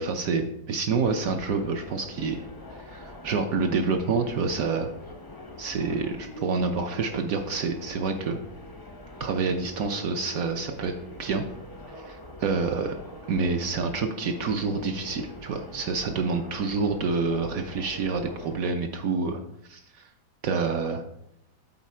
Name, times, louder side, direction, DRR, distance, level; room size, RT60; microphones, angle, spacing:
voice 1, 0.0-2.4 2.7-4.9 5.6-8.4 9.2-10.9 11.2-11.4 11.9-13.0 13.3-19.4 19.7-20.0 20.4-21.0, right 4 dB, 65° right, 5 dB, 0.9 m, -28 dB
sound 1, 1.0-18.6, left 1 dB, 30° left, 0.3 m, -44 dB
8.2 x 4.1 x 4.3 m, 0.77 s
omnidirectional pair, 2.0 m